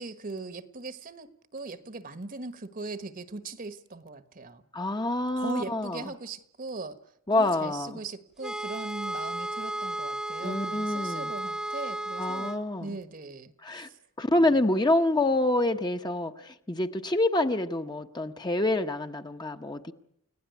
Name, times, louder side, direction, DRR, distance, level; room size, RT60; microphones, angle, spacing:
voice 1, 0.0-4.6 5.4-7.0 7.3-12.5 12.8-14.0, right 3 dB, 40° right, 13 dB, 1.3 m, -40 dB
voice 2, 4.7-6.0 7.3-8.0 10.4-11.3 12.2-13.0 13.6-13.9 14.2-19.9, left 2 dB, 20° left, 6 dB, 1.1 m, -27 dB
sound 1, 8.4-12.6, right 1 dB, ahead, 1.1 m, -34 dB
29.5 x 17.0 x 9.4 m, 0.73 s
head